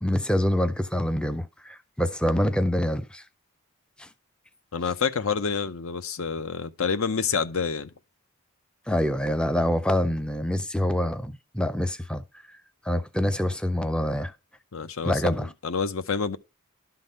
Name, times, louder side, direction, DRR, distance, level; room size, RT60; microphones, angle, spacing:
voice 1, 0.0-3.2 4.0-4.1 8.9-12.6 12.8-14.3 15.0-15.5, left 1 dB, 5° left, 0.4 m, -26 dB
voice 2, 4.7-7.9 14.7-16.4, left 5 dB, 70° left, 0.7 m, -28 dB
12.0 x 4.0 x 5.2 m
head